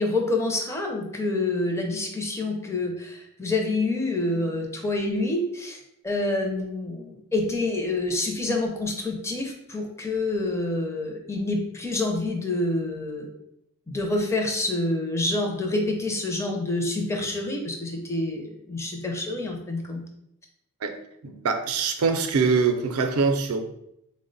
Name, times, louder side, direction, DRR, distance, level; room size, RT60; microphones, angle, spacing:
voice 1, 0.0-13.3 13.9-20.0, left 2 dB, 15° left, 2 dB, 0.5 m, -27 dB
voice 2, 21.2-23.6, right 5 dB, 75° right, 7 dB, 0.5 m, -23 dB
3.7 x 2.1 x 3.8 m, 0.79 s
head